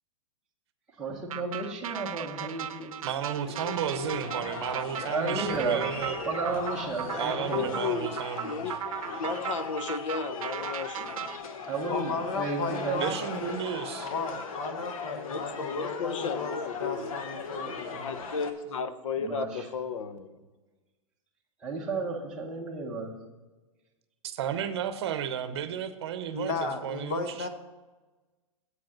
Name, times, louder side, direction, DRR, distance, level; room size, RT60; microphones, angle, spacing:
voice 1, 1.0-3.0 5.1-5.8 6.3-7.8 11.7-13.1 19.2-19.4 21.6-23.1, right 3 dB, 5° right, -5 dB, 0.8 m, -32 dB
sound 1, 1.3-11.4, right 10 dB, 85° right, 0.6 m, -37 dB
voice 2, 3.0-6.2 7.1-8.8 13.0-14.1 24.2-27.5, right 9 dB, 50° right, 11 dB, 0.8 m, -33 dB
sound 2, 3.2-18.5, left 5 dB, 85° left, 1.2 m, -38 dB
voice 3, 7.0-8.1 8.4-8.8 9.2-11.2 15.1-17.1 17.4-20.4, left 5 dB, 65° left, 11 dB, 0.8 m, -34 dB
voice 4, 11.9-13.5 14.0-16.5 16.8-18.2 26.3-27.5, left 4 dB, 40° left, 7 dB, 1.0 m, -34 dB
8.1 x 5.2 x 7.2 m, 1.2 s
supercardioid pair, 175°, 18 cm